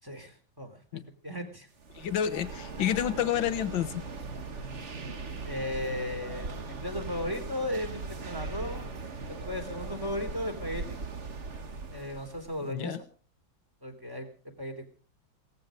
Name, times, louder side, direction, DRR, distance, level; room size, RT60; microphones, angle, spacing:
voice 1, 0.0-1.7 5.4-8.9 9.3-11.0 11.9-13.0 13.8-14.3 14.6-14.8, left 1 dB, 10° right, 5 dB, 3.4 m, -36 dB
sound 1, 1.8-12.6, right 4 dB, 40° right, 1.7 m, -39 dB
voice 2, 2.0-4.0 12.6-13.0, left 10 dB, 70° left, 14 dB, 1.8 m, -29 dB
18.5 x 15.0 x 5.1 m, 0.42 s
omnidirectional pair, 2.2 m